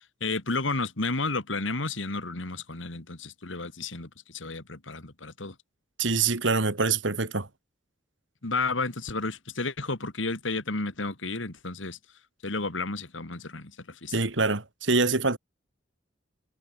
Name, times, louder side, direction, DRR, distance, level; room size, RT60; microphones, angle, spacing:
voice 1, 0.0-5.5 8.4-12.0 12.4-14.1, left 3 dB, 80° left, 2.7 m, -32 dB
voice 2, 6.0-7.5 14.1-15.4, right 4 dB, 70° right, 2.2 m, -25 dB
head